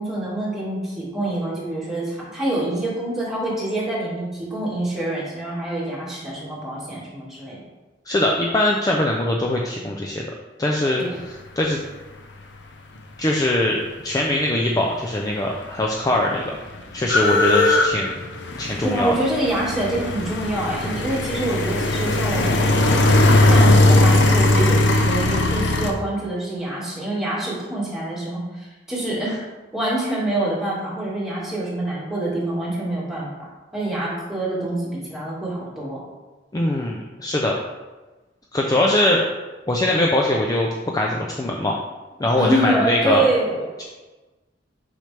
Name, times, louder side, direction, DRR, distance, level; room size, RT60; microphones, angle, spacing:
voice 1, 0.0-7.6 10.9-11.2 18.8-22.6 23.5-29.4 29.7-33.5 33.7-36.0 42.4-43.8, right 1 dB, ahead, -8 dB, 2.1 m, -26 dB
voice 2, 8.1-10.2 10.6-11.0 11.6-11.8 13.2-16.5 16.9-18.2 18.6-19.1 36.5-37.5 38.5-39.2 39.7-41.8 42.2-43.2, left 1 dB, 20° left, -1 dB, 0.5 m, -21 dB
sound 1, 15.2-15.3 15.5-25.9, left 2 dB, 70° left, 0.7 m, -19 dB
6.2 x 5.6 x 3.4 m, 1.2 s
head